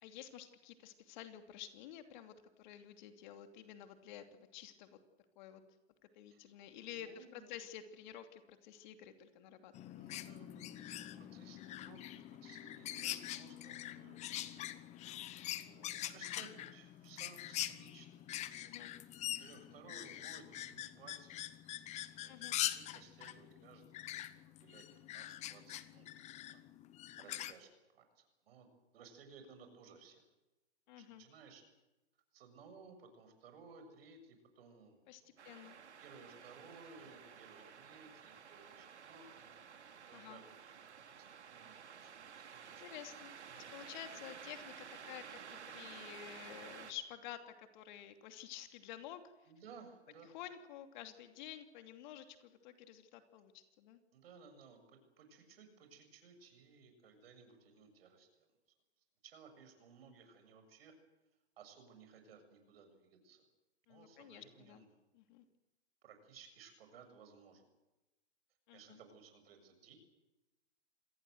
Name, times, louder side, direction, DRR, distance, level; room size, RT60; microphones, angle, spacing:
voice 1, 0.0-5.0 5.4-5.6 6.1-9.9 18.6-18.9 22.3-22.6 30.9-31.2 35.1-35.8 40.1-40.4 42.8-49.2 50.3-54.0 63.9-64.9 65.1-65.4 68.7-69.0, left 11 dB, 45° left, 7 dB, 2.9 m, -51 dB
voice 2, 6.9-7.6 9.9-14.7 15.6-18.3 19.4-21.5 22.2-24.9 25.1-26.1 26.3-26.6 27.2-28.7 28.9-30.2 31.0-31.6 32.3-35.5 36.0-39.5 40.1-40.7 41.1-41.3 41.5-42.9 43.4-43.6 49.5-50.3 54.1-58.5 59.2-60.9 61.6-63.4 63.9-64.9 66.0-67.7 68.7-69.9, right 5 dB, 60° right, 7 dB, 7.4 m, -59 dB
sound 1, 9.7-27.5, left 13 dB, 20° left, 1.1 m, -44 dB
sound 2, 35.4-46.9, right 7 dB, 80° right, 3.0 m, -53 dB
27.0 x 19.5 x 8.0 m, 1.0 s
hypercardioid pair, 135°, 34 cm